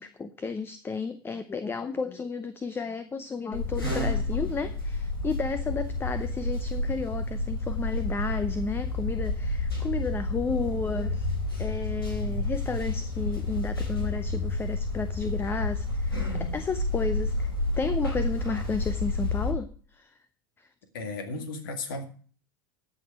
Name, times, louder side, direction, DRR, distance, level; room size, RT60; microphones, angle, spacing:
voice 1, 0.0-11.3 11.6-20.1 20.6-20.7, left 4 dB, 20° left, 12 dB, 0.7 m, -33 dB
sound 1, 3.5-19.5, left 2 dB, 85° left, 3.4 m, -30 dB
voice 2, 20.9-22.0, left 3 dB, 70° left, 6 dB, 2.1 m, -34 dB
13.0 x 6.1 x 6.1 m, 0.42 s
hypercardioid pair, 80°, 12 cm